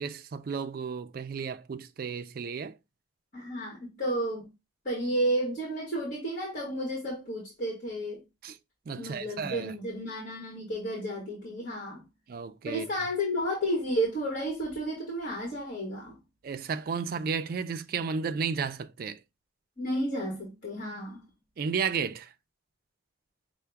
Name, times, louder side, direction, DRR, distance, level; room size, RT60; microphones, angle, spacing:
voice 1, 0.0-2.8 8.4-8.6 8.9-9.7 12.3-12.9 16.4-19.2 21.6-22.3, right 6 dB, 50° right, 0.3 m, -33 dB
voice 2, 3.3-4.5 4.8-8.2 8.9-12.0 12.6-16.2 19.8-21.2, equal, 45° left, 1.3 m, -32 dB
5.6 x 2.1 x 3.4 m
head